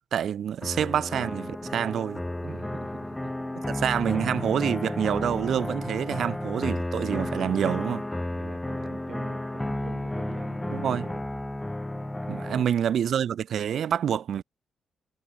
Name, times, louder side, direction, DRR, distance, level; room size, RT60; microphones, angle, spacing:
voice 1, 0.1-2.2 3.8-8.0 10.7-11.1 12.3-14.4, right 9 dB, 70° right, 0.7 m, -27 dB
sound 1, 0.6-12.6, left 1 dB, 10° left, 1.2 m, -32 dB
voice 2, 2.4-3.8 5.8-6.0 8.3-11.2 12.3-12.6, right 6 dB, 50° right, 3.9 m, -45 dB
cardioid pair, 95°, 0 cm